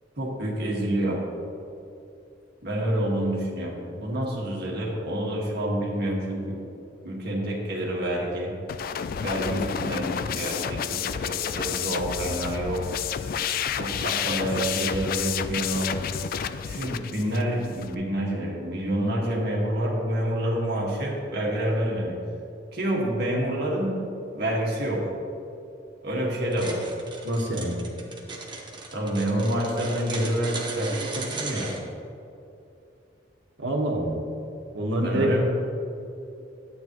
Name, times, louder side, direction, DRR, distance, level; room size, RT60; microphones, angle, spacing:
voice 1, 0.2-1.2 2.6-6.6 7.0-8.5 9.2-12.8 13.7-15.9 16.6-22.2 22.7-24.0 24.3-25.0 26.0-26.8 28.9-31.7 35.0-35.4, right 1 dB, 60° right, -2 dB, 1.8 m, -28 dB
sound 1, 8.7-17.9, left 8 dB, 50° left, 0.3 m, -30 dB
sound 2, 26.5-31.8, right 3 dB, 25° right, 1.2 m, -36 dB
voice 2, 27.2-27.8 33.6-34.2 34.7-35.4, right 1 dB, 85° right, 0 dB, 1.4 m, -26 dB
12.0 x 8.9 x 3.1 m, 2.7 s
head